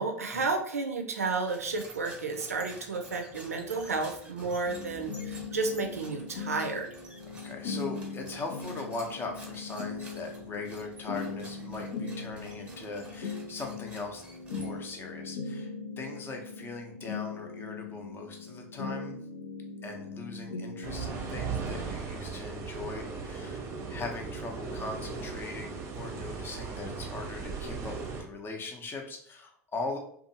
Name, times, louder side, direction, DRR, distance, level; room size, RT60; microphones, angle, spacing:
voice 1, 0.0-6.9, right 3 dB, 85° right, 5 dB, 0.4 m, -32 dB
sound 1, 1.1-15.1, right 2 dB, 15° right, 1.0 m, -51 dB
sound 2, 4.6-22.0, left 4 dB, 80° left, 0.6 m, -40 dB
voice 2, 7.4-14.2 14.5-19.2 19.8-30.0, left 3 dB, 30° left, 3 dB, 0.6 m, -40 dB
sound 3, 20.8-28.2, right 5 dB, 40° right, 0.6 m, -37 dB
2.5 x 2.3 x 2.7 m, 0.65 s
hypercardioid pair, 80°, 8 cm